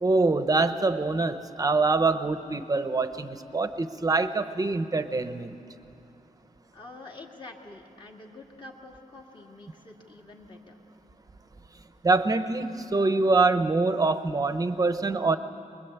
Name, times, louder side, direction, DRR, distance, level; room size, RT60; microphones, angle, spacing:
voice 1, 0.0-5.5 12.0-15.4, right 3 dB, 25° right, 10 dB, 0.8 m, -24 dB
voice 2, 6.7-10.8, left 2 dB, 35° left, -1 dB, 2.1 m, -47 dB
24.0 x 21.5 x 8.2 m, 2.7 s
wide cardioid pair, 170°, 14 cm